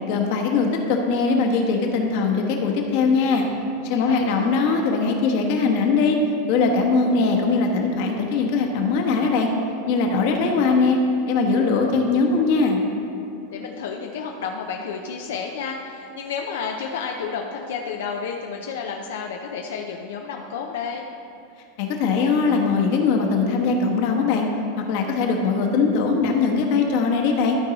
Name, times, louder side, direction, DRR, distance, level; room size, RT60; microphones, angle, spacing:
voice 1, 0.1-3.4 3.8-6.2 6.5-9.5 9.9-11.0 11.3-12.8 21.8-24.5 24.8-27.6, left 4 dB, 60° left, 2 dB, 1.1 m, -21 dB
voice 2, 3.9-4.6 13.5-21.0, left 6 dB, 85° left, 2 dB, 0.5 m, -31 dB
12.5 x 4.7 x 4.0 m, 2.7 s
supercardioid pair, 145°, 0 cm